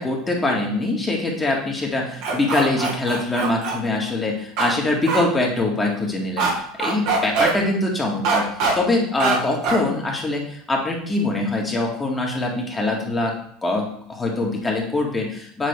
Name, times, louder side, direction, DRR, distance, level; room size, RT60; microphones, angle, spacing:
voice 1, 0.0-8.5 8.7-13.3 13.6-15.7, left 2 dB, 20° left, 0 dB, 1.8 m, -23 dB
sound 1, 2.2-3.8 4.6-4.7 5.1-5.2 6.4-6.5 6.8-7.5 8.2-8.7 9.2-9.4 9.6-9.8, right 5 dB, 60° right, 1.5 m, -22 dB
7.7 x 3.7 x 3.3 m, 0.67 s
hypercardioid pair, 75°, 0 cm